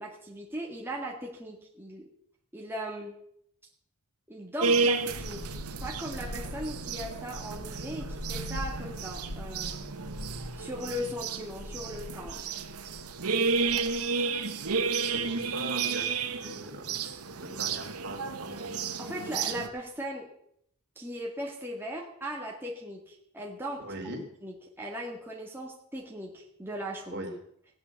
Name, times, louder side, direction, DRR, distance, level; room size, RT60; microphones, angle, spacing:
voice 1, 0.0-2.1 2.5-3.2 4.3-5.6 5.8-9.8 10.6-12.4 19.0-20.3 21.0-23.8 24.4-27.2, equal, 10° right, -2 dB, 1.9 m, -38 dB
sound 1, 4.6-19.7, right 4 dB, 85° right, 1.2 m, -32 dB
sound 2, 5.1-19.9, left 1 dB, 85° left, 1.8 m, -44 dB
voice 2, 15.0-16.1 16.3-18.7 23.8-24.2 27.1-27.3, right 1 dB, 50° right, 3 dB, 3.0 m, -40 dB
16.0 x 9.7 x 7.2 m, 0.71 s
head